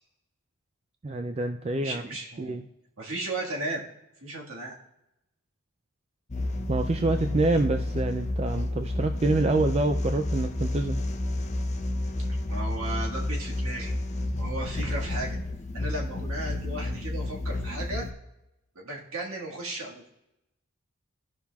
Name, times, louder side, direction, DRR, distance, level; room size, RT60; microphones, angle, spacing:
voice 1, 1.0-2.0 2.4-2.6 6.7-11.0, right 2 dB, 25° right, 6 dB, 0.3 m, -26 dB
voice 2, 1.8-2.6 3.0-3.8 4.2-4.8 12.3-13.9 14.4-15.4 15.7-18.1 18.7-20.0, right 2 dB, 65° right, -1 dB, 1.7 m, -35 dB
sound 1, 6.3-18.1, left 1 dB, 30° left, 0.6 m, -30 dB
15.5 x 5.7 x 2.3 m, 0.90 s
head